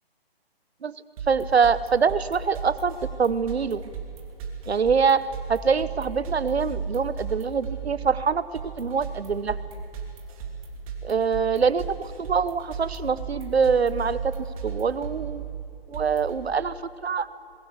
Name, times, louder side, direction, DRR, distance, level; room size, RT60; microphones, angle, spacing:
sound 1, 1.2-16.4, right 5 dB, 35° right, 3.2 m, -36 dB
voice 1, 1.3-3.8 4.7-5.2 5.5-8.4 8.8-9.6 11.0-14.3 14.6-15.5 15.9-16.7 17.0-17.3, right 6 dB, 90° right, 16 dB, 1.0 m, -24 dB
21.0 x 16.5 x 8.3 m, 2.8 s
hypercardioid pair, 150°, 31 cm